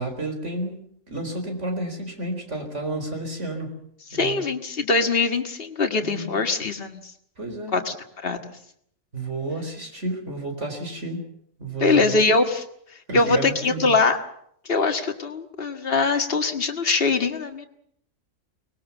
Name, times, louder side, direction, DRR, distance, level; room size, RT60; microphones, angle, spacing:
voice 1, 0.0-3.8 4.1-4.4 6.0-6.3 7.4-7.8 9.1-11.2 11.6-12.2 13.1-14.0, right 2 dB, 60° right, 4 dB, 4.6 m, -31 dB
voice 2, 4.1-7.0 7.7-7.9 8.2-8.5 11.8-12.6 13.1-14.2 14.7-17.7, left 3 dB, 45° left, 5 dB, 2.0 m, -22 dB
24.0 x 20.5 x 7.2 m, 0.69 s
omnidirectional pair, 1.4 m